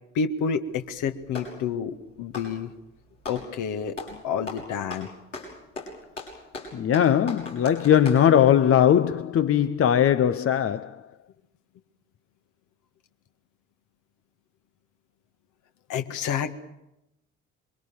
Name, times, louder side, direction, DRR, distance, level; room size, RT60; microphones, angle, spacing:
voice 1, 0.2-2.7 3.3-4.0 4.2-5.1 15.9-16.5, left 6 dB, 55° left, 2.0 m, -29 dB
Clapping, 0.7-1.6 2.2-3.5 3.9-4.2 4.5-8.3, left 3 dB, 85° left, 6.6 m, -38 dB
voice 2, 6.7-11.0, left 9 dB, 40° left, 1.0 m, -20 dB
27.5 x 23.5 x 7.1 m
figure-of-eight pair, 50°, 36 cm